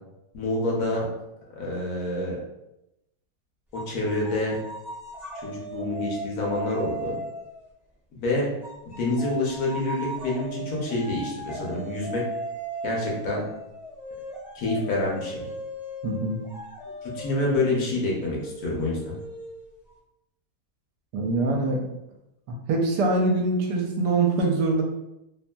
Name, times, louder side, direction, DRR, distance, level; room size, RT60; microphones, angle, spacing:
voice 1, 0.3-1.1 1.5-2.4 3.7-4.6 5.3-7.2 8.1-8.5 9.0-12.2 12.8-13.4 14.5-15.5 17.0-19.2, left 2 dB, 65° left, -3 dB, 1.1 m, -27 dB
sound 1, 3.7-7.6 8.6-19.9, right 1 dB, ahead, 0.5 m, -37 dB
voice 2, 16.0-16.4 21.1-21.8 22.7-24.8, right 2 dB, 75° right, 0 dB, 1.2 m, -23 dB
3.0 x 2.6 x 2.2 m, 0.89 s
omnidirectional pair, 1.8 m